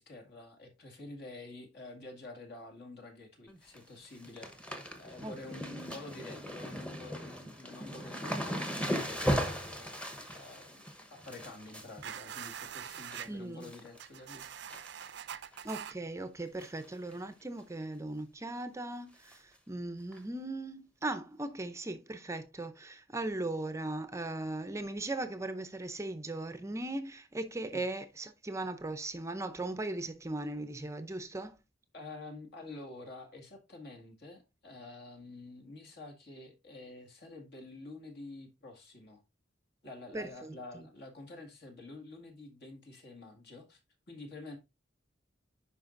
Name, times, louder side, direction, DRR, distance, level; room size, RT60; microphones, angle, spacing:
voice 1, 0.0-10.0 10.3-10.8 11.1-14.5 27.7-27.8 31.9-39.2 39.8-43.8 44.1-44.6, left 2 dB, 60° left, 2.1 m, -48 dB
sound 1, 3.5-3.8 4.0-13.3 13.6-14.0 14.4-15.2 15.5-15.6 16.6-16.9 17.1-17.2 17.6-17.7 19.3-19.4 20.1-20.2, equal, 5° left, 1.0 m, -38 dB
sound 2, 12.0-13.3 14.0-15.9, right 9 dB, 60° right, 0.5 m, -43 dB
voice 2, 13.3-13.7 15.6-31.6 40.1-40.3, right 2 dB, 15° right, 0.5 m, -38 dB
11.0 x 4.5 x 2.5 m
head